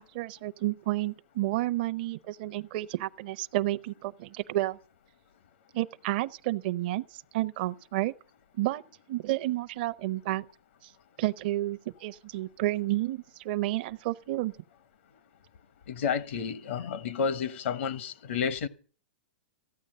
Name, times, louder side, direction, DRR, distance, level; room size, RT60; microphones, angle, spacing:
voice 1, 0.0-4.8 5.7-8.1 8.6-8.8 9.1-10.4 11.2-14.5, right 16 dB, 50° right, 0.6 m, -31 dB
voice 2, 15.9-18.7, left 6 dB, 75° left, 1.0 m, -31 dB
14.5 x 9.0 x 7.6 m
hypercardioid pair, 140°, 6 cm